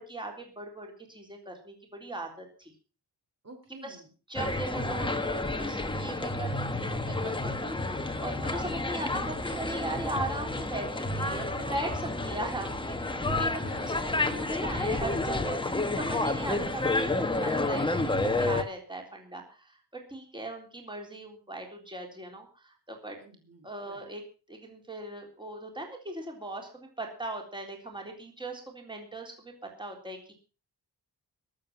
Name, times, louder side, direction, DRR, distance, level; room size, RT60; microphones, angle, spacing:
voice 1, 0.0-2.7 3.8-4.0 4.3-13.5 13.8-13.9 14.2-17.1 17.4-19.8 20.1-23.2 23.6-24.2 24.5-29.5 29.8-30.3, right 2 dB, 10° right, 2 dB, 3.7 m, -39 dB
voice 2, 3.4-4.1 13.6-14.0 17.2-17.4 23.2-24.1, right 2 dB, 40° right, 4 dB, 3.2 m, -51 dB
sound 1, 4.4-18.6, left 2 dB, 10° left, 1.2 m, -30 dB
22.0 x 7.7 x 5.9 m, 0.37 s
wide cardioid pair, 175°, 40 cm